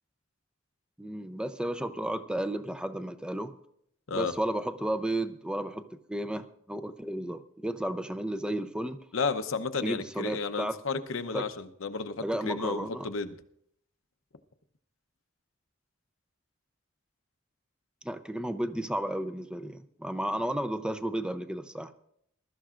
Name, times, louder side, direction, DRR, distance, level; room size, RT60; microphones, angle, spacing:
voice 1, 1.0-3.5 4.1-9.0 9.8-10.8 11.3-11.4 12.2-13.1 18.0-21.9, right 1 dB, 5° right, 11 dB, 0.6 m, -33 dB
voice 2, 9.1-13.4, left 4 dB, 75° left, 9 dB, 0.8 m, -32 dB
22.0 x 12.5 x 2.5 m, 0.71 s
head